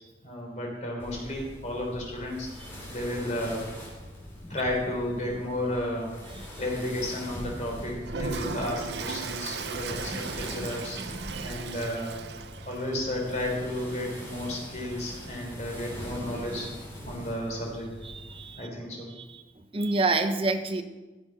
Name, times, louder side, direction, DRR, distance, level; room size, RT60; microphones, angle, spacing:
voice 1, 0.2-3.6 4.5-6.1 6.6-12.2 12.6-16.7 17.0-17.9 18.6-19.1, left 1 dB, 40° left, -1 dB, 3.3 m, -33 dB
sound 1, 1.0-18.6, equal, 15° left, 3.1 m, -42 dB
Toilet flush, 8.0-15.5, right 5 dB, 70° right, 0.7 m, -38 dB
voice 2, 10.1-10.7 11.0-11.5 18.0-18.7 19.2-20.8, right 3 dB, 30° right, 6 dB, 0.8 m, -30 dB
14.5 x 6.6 x 5.4 m, 1.2 s
head